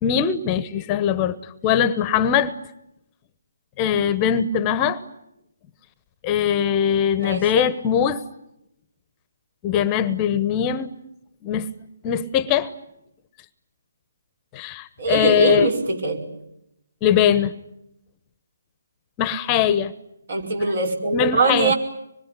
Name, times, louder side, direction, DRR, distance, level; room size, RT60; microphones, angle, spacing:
voice 1, 0.0-2.5 3.8-5.0 6.2-8.2 9.6-10.9 11.4-11.7 12.0-12.7 14.5-15.7 17.0-17.5 19.2-19.9 21.1-21.7, left 9 dB, 20° left, 14 dB, 1.0 m, -21 dB
voice 2, 15.0-16.3 20.3-21.7, right 3 dB, 60° right, 3 dB, 5.1 m, -22 dB
25.5 x 22.5 x 9.9 m, 0.84 s
figure-of-eight pair, 150°, 0 cm